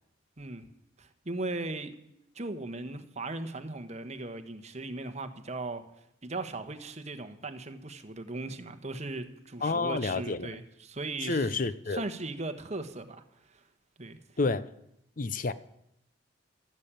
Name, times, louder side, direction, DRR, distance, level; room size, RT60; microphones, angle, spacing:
voice 1, 0.4-0.7 1.0-1.9 2.3-5.8 6.2-11.5 11.9-13.2 13.5-13.6 14.0-14.2, right 2 dB, 35° right, 1.3 m, -38 dB
voice 2, 9.6-10.5 11.2-12.0 14.4-14.7 15.2-15.5, left 3 dB, 45° left, 0.6 m, -29 dB
13.5 x 12.0 x 8.9 m
head